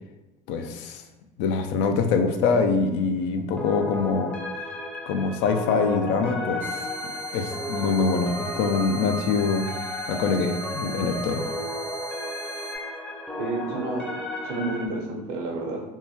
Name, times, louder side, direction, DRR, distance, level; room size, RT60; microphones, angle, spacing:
voice 1, 0.5-1.0 1.4-4.3 5.1-6.6 7.3-9.7 10.1-11.4, left 4 dB, 65° left, 6 dB, 0.4 m, -24 dB
sound 1, 3.6-14.9, left 1 dB, 5° left, 0.6 m, -34 dB
sound 2, 6.6-12.8, right 2 dB, 40° left, 0.9 m, -38 dB
voice 2, 13.4-15.8, right 2 dB, 80° right, 0 dB, 0.8 m, -30 dB
3.6 x 2.2 x 2.8 m, 1.0 s
hypercardioid pair, 85°, 20 cm